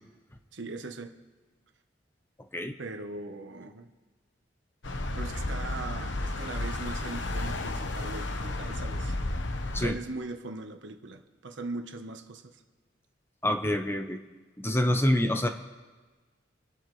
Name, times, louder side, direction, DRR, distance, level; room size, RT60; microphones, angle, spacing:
voice 1, 0.5-1.1 2.8-3.9 5.1-9.2 9.7-12.6, right 3 dB, 75° right, 6 dB, 1.1 m, -40 dB
sound 1, 4.8-9.9, left 2 dB, 85° left, 1.1 m, -32 dB
voice 2, 13.4-14.2 14.6-15.5, left 1 dB, 15° left, 6 dB, 0.9 m, -26 dB
27.0 x 11.5 x 3.3 m, 1.3 s
head